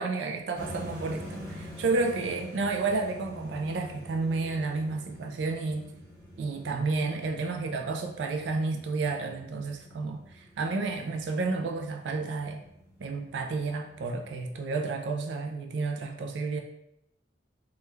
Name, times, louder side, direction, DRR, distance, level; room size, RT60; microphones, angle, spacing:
voice 1, 0.0-5.9 6.4-12.6 13.0-16.6, right 3 dB, 70° right, 3 dB, 0.3 m, -31 dB
sound 1, 0.5-14.5, left 1 dB, 15° left, 1.4 m, -46 dB
3.0 x 2.3 x 3.2 m, 0.80 s
head